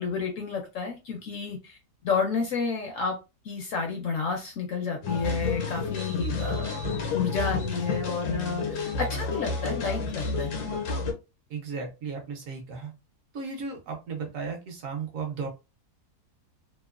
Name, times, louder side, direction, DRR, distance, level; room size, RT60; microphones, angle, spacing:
voice 1, 0.0-1.8 2.0-3.2 3.4-10.6, left 5 dB, 70° left, 0.8 m, -31 dB
sound 1, 5.0-11.1, left 4 dB, 85° left, 1.2 m, -30 dB
voice 2, 11.5-12.9 13.3-15.5, right 5 dB, 65° right, 0.9 m, -35 dB
3.0 x 2.0 x 2.3 m
omnidirectional pair, 1.7 m